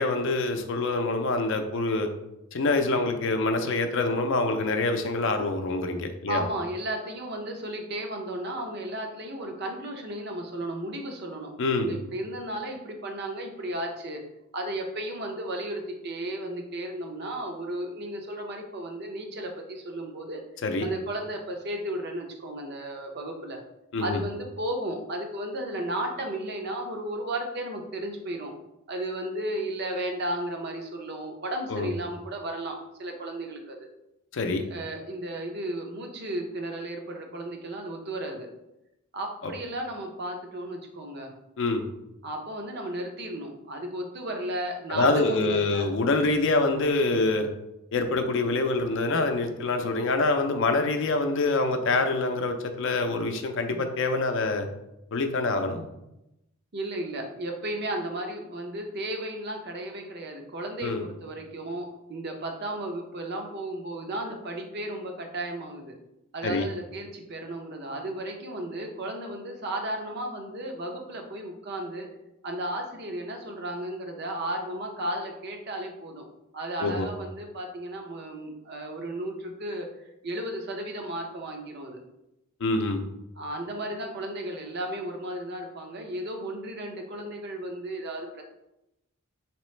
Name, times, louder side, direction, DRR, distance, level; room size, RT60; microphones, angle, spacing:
voice 1, 0.0-2.1 2.5-6.4 11.6-11.9 20.6-20.9 23.9-24.2 31.7-31.9 34.3-34.6 41.6-41.8 44.9-47.5 47.9-54.7 55.1-55.9 60.8-61.1 66.4-66.7 76.8-77.1 82.6-83.0, left 3 dB, 60° left, 6 dB, 0.4 m, -25 dB
voice 2, 6.3-14.2 14.5-20.4 20.8-23.6 24.0-28.5 28.9-33.9 34.7-38.5 39.1-41.3 42.2-45.9 53.7-53.8 56.7-65.9 66.3-72.1 72.4-76.3 76.5-79.9 80.2-82.0 83.4-88.4, right 1 dB, 50° right, 2 dB, 0.6 m, -34 dB
4.0 x 3.0 x 3.1 m, 0.88 s
head